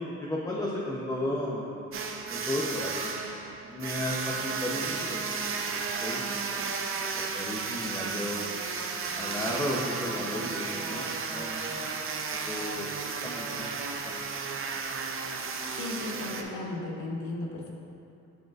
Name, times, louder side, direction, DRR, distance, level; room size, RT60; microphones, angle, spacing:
voice 1, 0.2-1.8 2.3-3.2 3.6-6.6 7.2-8.5 9.1-11.8 12.3-13.8 14.0-14.2, left 1 dB, 10° left, -5 dB, 0.7 m, -34 dB
sound 1, 1.9-16.4, right 5 dB, 45° right, 0.6 m, -34 dB
voice 2, 15.7-17.7, left 2 dB, 80° left, 0 dB, 1.0 m, -35 dB
9.0 x 5.0 x 2.4 m, 2.8 s
cardioid pair, 90°, 30 cm